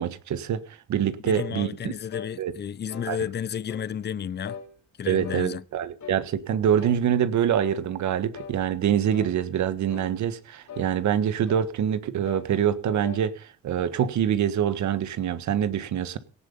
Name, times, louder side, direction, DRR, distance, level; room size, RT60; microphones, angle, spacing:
voice 1, 0.0-1.9 2.4-2.5 3.1-3.2 5.1-16.2, right 9 dB, 70° right, 1.6 m, -25 dB
voice 2, 1.2-4.6 5.0-5.6, left 8 dB, 35° left, 0.7 m, -32 dB
sound 1, 1.3-1.6 2.1-2.3 2.9-3.1 3.7-3.9 4.4-4.7 5.2-5.5 6.0-6.3 6.8-7.0 7.6-7.8 8.3-8.6 9.1-9.4 9.9-10.1 10.7-10.9 11.5-11.7 12.2-12.5 12.8-13.3, left 6 dB, 65° left, 4.4 m, -41 dB
17.5 x 10.0 x 5.4 m
cardioid pair, 90°, 30 cm